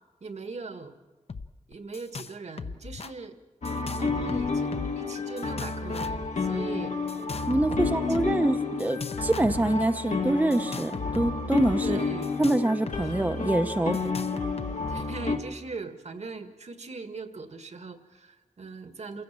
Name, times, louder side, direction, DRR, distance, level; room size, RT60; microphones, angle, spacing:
voice 1, 0.2-0.9 1.7-3.4 3.9-7.0 7.7-8.5 11.8-12.4 13.0-13.1 14.9-19.2, right 4 dB, 65° right, 8 dB, 1.8 m, -40 dB
sound 1, 1.3-1.5 1.7-2.3 2.6-3.1 3.6-5.0 5.4-6.3 7.1-8.3 8.8-9.9 10.5-13.0 13.3-13.4 13.9-15.0, left 4 dB, 55° left, 0.8 m, -38 dB
sound 2, 3.6-15.4, left 4 dB, 80° left, 2.0 m, -30 dB
voice 2, 7.5-12.0 12.4-14.0, right 1 dB, 15° right, 9 dB, 0.6 m, -25 dB
28.5 x 16.5 x 7.4 m, 1.2 s
wide cardioid pair, 110°, 12 cm